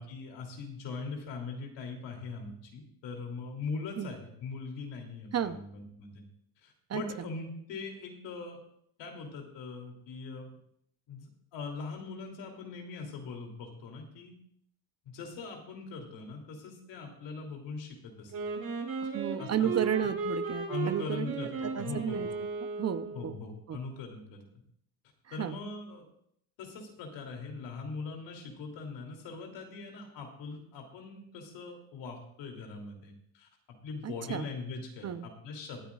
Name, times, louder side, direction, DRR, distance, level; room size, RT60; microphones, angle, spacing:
voice 1, 0.0-6.2 6.6-8.6 9.0-10.6 11.1-14.4 15.0-18.3 19.4-19.7 20.7-22.4 23.1-24.4 25.3-26.0 26.6-33.5 33.8-35.9, left 4 dB, 75° left, 2 dB, 3.1 m, -41 dB
Wind instrument woodwind instrument, 18.3-23.3, right 4 dB, 55° right, 5.0 m, -36 dB
voice 2, 19.1-21.4 21.6-22.3 22.8-23.3 23.7-23.8 25.3-25.6 34.0-34.5 35.0-35.3, right 9 dB, 35° right, 12 dB, 0.7 m, -32 dB
23.5 x 9.2 x 2.4 m, 0.69 s
supercardioid pair, 90°, 43 cm